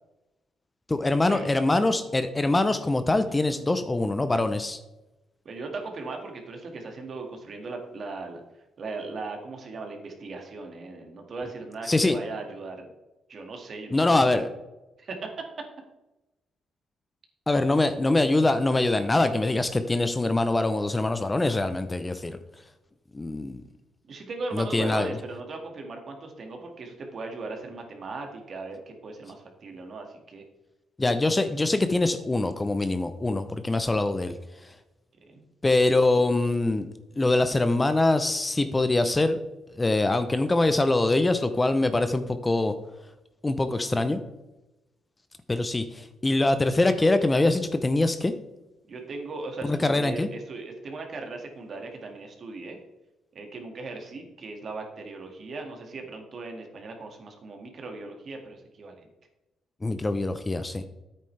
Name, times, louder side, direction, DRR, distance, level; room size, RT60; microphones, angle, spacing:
voice 1, 0.9-4.8 11.9-12.2 13.9-14.5 17.5-22.4 23.1-23.6 24.5-25.2 31.0-34.3 34.6-34.7 35.6-36.9 37.1-39.4 39.7-42.7 43.4-44.2 45.5-48.3 49.6-50.3 59.8-60.8, left 2 dB, 20° left, 10 dB, 0.6 m, -24 dB
voice 2, 5.5-8.4 8.8-12.9 13.3-14.4 15.0-15.5 24.1-30.4 35.3-35.4 48.9-52.8 53.3-59.1, right 3 dB, 50° right, 3 dB, 1.9 m, -38 dB
10.0 x 8.6 x 3.3 m, 0.99 s
cardioid pair, 90°, 0 cm